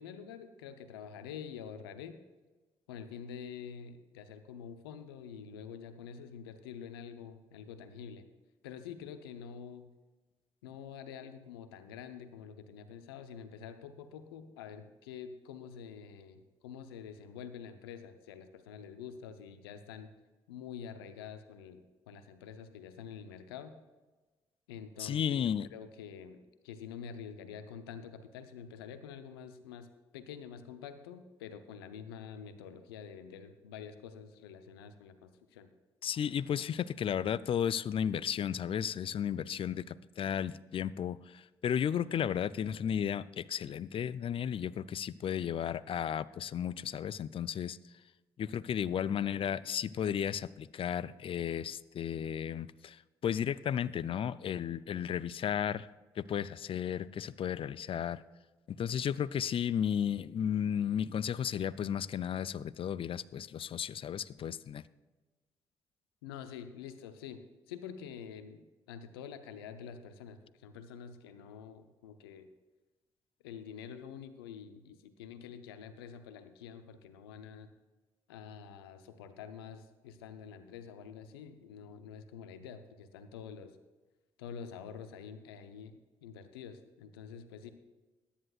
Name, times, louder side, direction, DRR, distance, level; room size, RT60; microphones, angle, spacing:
voice 1, 0.0-2.2 2.9-8.3 8.6-9.9 10.6-20.1 20.5-23.7 24.7-29.9 30.1-35.7 66.2-67.4 67.7-68.6 68.9-72.5 73.4-77.7 78.3-83.7 84.4-87.7, left 7 dB, 85° left, 10 dB, 0.7 m, -47 dB
voice 2, 25.0-25.7 36.0-47.8 48.4-55.9 56.2-58.2 58.7-64.8, left 9 dB, 45° left, 18 dB, 0.5 m, -34 dB
21.5 x 10.0 x 2.4 m, 1.2 s
hypercardioid pair, 40°, 12 cm